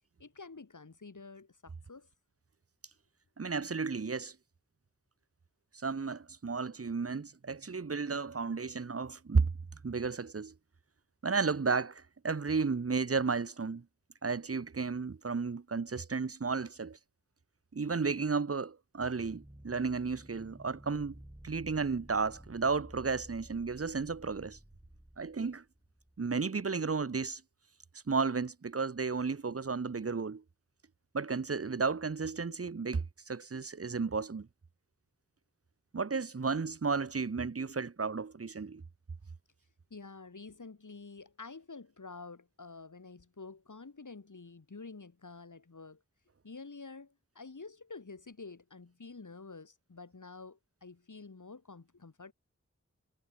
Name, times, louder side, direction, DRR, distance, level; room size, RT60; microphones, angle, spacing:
voice 1, 0.2-2.1 39.9-46.0 46.4-52.3, left 4 dB, 80° left, 2.0 m, -49 dB
voice 2, 3.4-4.3 5.7-9.5 9.8-10.5 11.2-13.8 14.2-17.0 17.7-21.1 21.4-24.6 25.2-25.6 26.2-27.4 28.1-30.4 31.1-34.5 35.9-38.8, right 4 dB, 50° right, 0.8 m, -33 dB
sound 1, 19.1-26.3, right 1 dB, 15° right, 4.4 m, -53 dB
wide cardioid pair, 40°, 30 cm